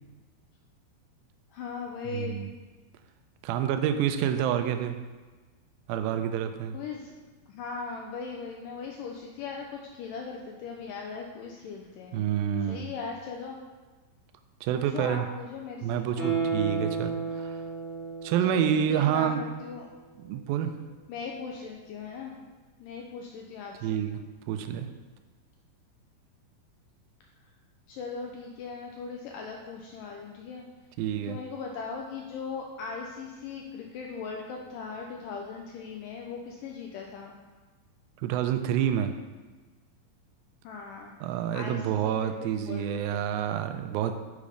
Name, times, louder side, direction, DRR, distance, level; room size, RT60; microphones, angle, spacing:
voice 1, 1.5-2.4 6.7-7.1 7.5-12.2 12.7-13.6 14.7-16.4 18.4-19.9 21.1-22.3 22.8-24.0 27.9-30.7 31.3-37.3 40.6-41.1 41.5-43.3, left 5 dB, 80° left, 1 dB, 1.9 m, -39 dB
voice 2, 2.1-2.5 3.4-5.0 5.9-6.8 12.1-12.9 14.6-15.3 15.8-17.6 18.2-19.4 20.2-20.7 23.8-24.2 24.5-24.9 31.0-31.4 38.2-39.1 41.2-44.1, right 9 dB, 80° right, 8 dB, 2.2 m, -28 dB
Guitar, 16.1-19.4 19.8-19.9, right 5 dB, 30° left, 0.8 m, -32 dB
8.4 x 5.2 x 5.0 m, 1.3 s
omnidirectional pair, 4.5 m